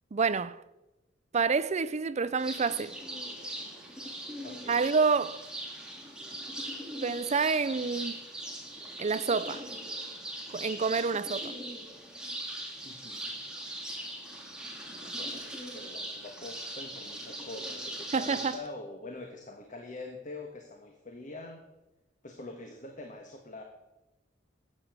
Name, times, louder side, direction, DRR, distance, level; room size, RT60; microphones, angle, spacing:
voice 1, 0.1-0.6 1.3-2.9 4.7-5.4 7.0-8.2 9.0-9.6 10.5-11.5 18.1-18.6, right 5 dB, 35° right, 0.5 m, -28 dB
sound 1, 2.4-18.6, right 1 dB, 5° right, 2.5 m, -40 dB
voice 2, 4.4-4.9 12.8-13.4 15.0-21.6 22.2-23.6, left 2 dB, 45° left, 1.4 m, -45 dB
13.0 x 8.8 x 6.1 m
head